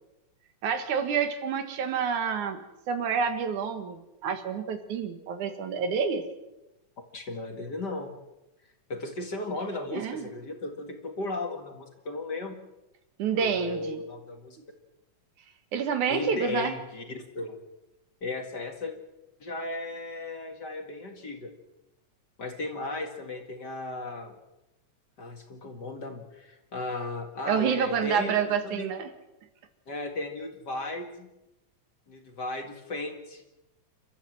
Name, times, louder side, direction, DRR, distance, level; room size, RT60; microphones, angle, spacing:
voice 1, 0.6-2.6 2.9-6.2 9.9-10.2 13.2-14.0 15.7-16.7 27.5-29.1, right 7 dB, 90° right, 8 dB, 3.2 m, -28 dB
voice 2, 7.1-8.1 8.9-12.6 13.3-14.6 16.1-17.6 18.2-18.9 19.4-21.5 22.4-24.3 25.2-28.9 29.9-31.3 32.1-33.4, left 2 dB, 40° left, 4 dB, 2.3 m, -35 dB
29.5 x 13.5 x 7.6 m, 0.96 s
omnidirectional pair, 3.4 m